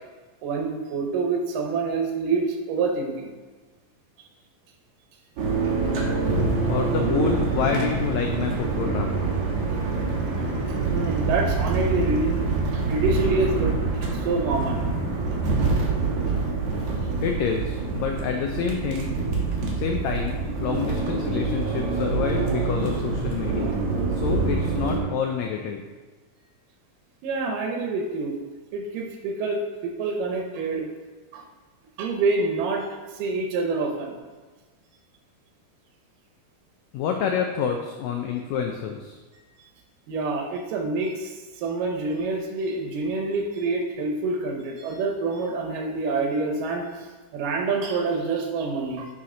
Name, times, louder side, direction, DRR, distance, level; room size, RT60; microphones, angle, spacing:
voice 1, 0.4-3.3 10.9-12.3 12.7-13.8 14.1-14.8 27.2-28.4 28.7-30.9 31.3-31.4 32.0-32.9 33.1-34.2 39.6-39.7 40.1-49.1, right 3 dB, 85° right, 1 dB, 2.5 m, -27 dB
sound 1, 5.4-25.0, right 3 dB, 60° right, 2.1 m, -25 dB
voice 2, 6.7-9.3 17.2-19.2 19.7-23.8 24.1-25.8 36.9-39.2, left 7 dB, 85° left, 3 dB, 1.6 m, -28 dB
10.5 x 4.2 x 3.8 m, 1.3 s
omnidirectional pair, 3.8 m